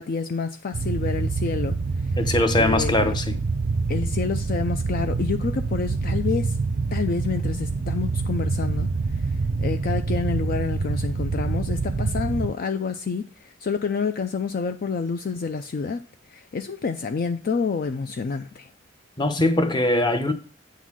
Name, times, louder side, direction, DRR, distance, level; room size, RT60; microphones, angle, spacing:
voice 1, 0.0-1.8 2.6-3.1 3.9-6.6 6.9-8.9 9.6-13.3 13.6-16.0 16.3-18.7, left 5 dB, 50° left, 0.4 m, -28 dB
sound 1, 0.7-12.5, right 4 dB, 60° right, 0.5 m, -26 dB
voice 2, 2.2-3.3 19.2-20.3, left 1 dB, 25° left, 0.8 m, -21 dB
8.2 x 3.9 x 6.2 m
head